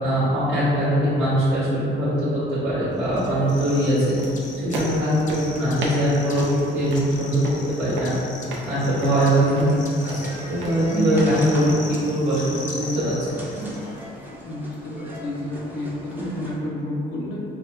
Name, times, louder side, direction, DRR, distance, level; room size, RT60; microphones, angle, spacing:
voice 1, 0.0-4.1 4.6-7.4 7.8-8.1 8.6-9.7 10.0-10.2 10.5-11.7 12.1-13.1, right 1 dB, 90° right, -11 dB, 1.5 m, -21 dB
sound 1, 3.1-14.0, left 3 dB, 40° left, 0.5 m, -40 dB
sound 2, 4.2-11.8, right 2 dB, 70° right, 0.6 m, -36 dB
sound 3, 8.9-16.6, equal, 10° right, 0.6 m, -34 dB
voice 2, 14.4-17.4, left 1 dB, 80° left, -5 dB, 0.7 m, -31 dB
4.6 x 2.2 x 2.5 m, 2.7 s
cardioid pair, 90°, 20 cm